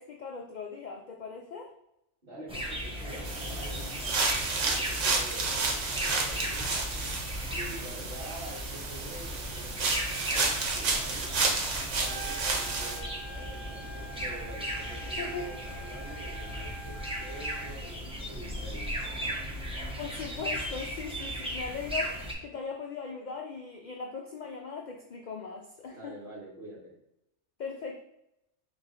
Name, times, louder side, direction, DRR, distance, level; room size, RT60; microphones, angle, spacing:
voice 1, 0.0-1.7 15.0-15.5 19.6-26.2 27.6-28.0, left 5 dB, 65° left, 1 dB, 0.4 m, -39 dB
voice 2, 2.2-7.0 7.5-11.4 12.0-19.3 25.9-27.0, right 1 dB, 50° right, -6 dB, 1.7 m, -47 dB
sound 1, 2.5-22.3, equal, 5° right, 0.5 m, -37 dB
sound 2, 3.2-13.0, right 3 dB, 90° right, 1.2 m, -31 dB
Trumpet, 12.0-17.8, right 3 dB, 65° right, 0.4 m, -45 dB
3.7 x 3.0 x 3.9 m, 0.83 s
omnidirectional pair, 1.2 m